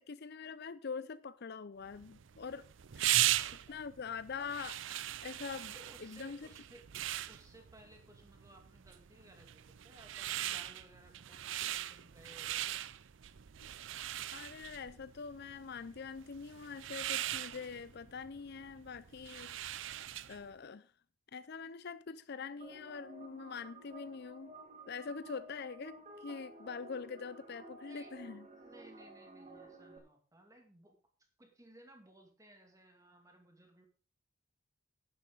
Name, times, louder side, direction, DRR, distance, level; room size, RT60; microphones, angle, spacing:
voice 1, 0.0-2.7 3.0-3.4 3.7-5.7 6.0-6.5 14.3-20.0 20.3-20.9 21.3-24.5 24.9-28.5, left 5 dB, 50° left, 0.5 m, -44 dB
sound 1, 1.9-20.5, right 14 dB, 60° right, 0.5 m, -39 dB
voice 2, 3.1-3.8 5.7-6.9 7.3-12.7 27.8-28.1 28.5-31.0 31.4-33.8, right 1 dB, 15° right, 2.4 m, -60 dB
sound 2, 22.6-30.0, right 2 dB, 35° right, 2.1 m, -53 dB
11.5 x 10.5 x 3.9 m
head